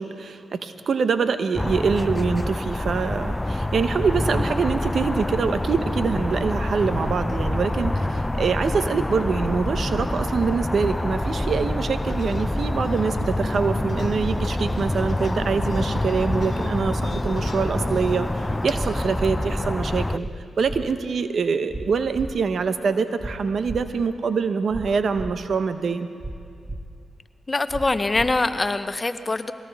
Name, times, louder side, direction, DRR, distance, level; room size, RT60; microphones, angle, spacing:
voice 1, 0.0-20.3 20.6-26.1, right 5 dB, 65° right, 10 dB, 0.8 m, -25 dB
sound 1, 1.6-20.2, left 1 dB, 15° left, 0.4 m, -26 dB
sound 2, 9.7-9.8 10.1-10.3 11.2-11.3 11.6-11.8 12.7-12.8 13.1-13.3 14.2-14.3 14.6-14.8 15.7-15.8 16.1-16.3 17.2-17.3 17.6-17.8 18.7-18.8 19.1-19.3 20.2-20.3 20.6-20.8 21.7-21.8 22.1-22.3 23.2-23.3 23.6-23.8 24.7-24.8 25.1-25.3 26.2-26.3 26.6-26.8 27.7-27.8 28.1-28.3, right 2 dB, 15° right, 1.6 m, -33 dB
sound 3, 12.0-18.8, left 2 dB, 60° left, 1.8 m, -34 dB
voice 2, 27.5-29.5, left 3 dB, 35° left, 10 dB, 0.9 m, -23 dB
22.5 x 17.5 x 3.5 m, 2.4 s
supercardioid pair, 45°, 0 cm